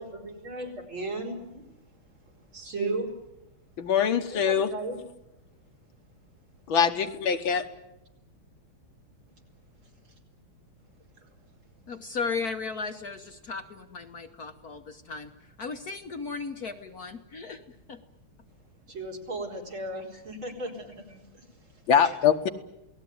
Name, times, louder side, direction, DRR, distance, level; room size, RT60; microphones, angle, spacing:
voice 1, 0.0-1.6 2.5-3.1 4.3-5.0 18.9-21.5 22.0-22.2, right 2 dB, 65° right, 0 dB, 5.3 m, -35 dB
voice 2, 3.8-4.7 6.7-7.7 21.9-22.5, left 7 dB, 70° left, 7 dB, 1.9 m, -23 dB
voice 3, 11.9-15.3 15.6-17.6 17.9-18.0, left 4 dB, 50° left, 6 dB, 1.4 m, -35 dB
28.0 x 18.5 x 9.5 m, 0.90 s
omnidirectional pair, 2.4 m